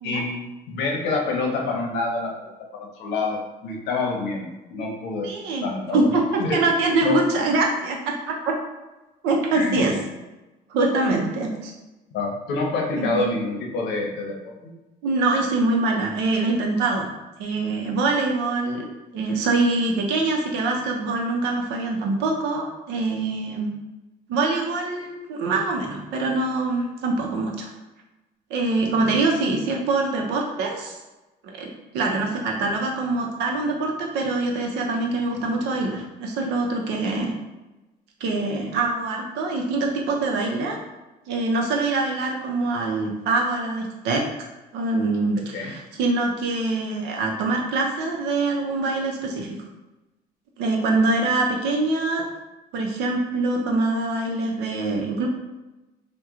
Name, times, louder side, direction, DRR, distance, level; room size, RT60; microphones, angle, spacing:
voice 1, 0.0-5.3 5.6-6.1 6.4-6.6 7.0-7.2 9.5-9.8 12.1-14.7 45.4-45.7, left 3 dB, 90° left, 0 dB, 0.8 m, -27 dB
voice 2, 5.2-8.5 9.2-9.9 10.7-11.7 12.9-13.3 15.0-17.1 17.4-18.8 19.1-23.7 24.3-27.7 28.5-31.0 31.4-31.7 31.9-37.3 38.2-40.8 41.3-44.2 44.7-49.6 50.6-52.2 52.7-55.3, right 3 dB, 90° right, 1 dB, 0.7 m, -24 dB
2.9 x 2.2 x 3.6 m, 1.1 s
cardioid pair, 110°, 17 cm